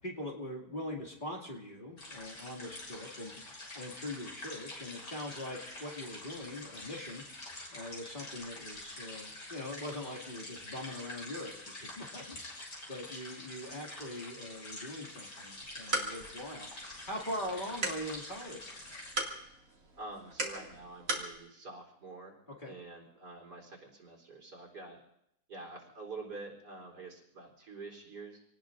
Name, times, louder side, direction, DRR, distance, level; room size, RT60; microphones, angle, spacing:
voice 1, 0.0-19.0 22.6-22.8, left 1 dB, 30° left, -1 dB, 2.5 m, -42 dB
sound 1, 2.0-19.1, left 2 dB, 85° left, 4.7 m, -46 dB
sound 2, 15.5-21.3, right 1 dB, 55° right, 2.8 m, -39 dB
voice 2, 20.0-22.4 22.6-25.0 25.5-28.4, right 3 dB, 85° right, -1 dB, 4.4 m, -47 dB
27.0 x 19.0 x 2.6 m, 0.74 s
omnidirectional pair, 1.7 m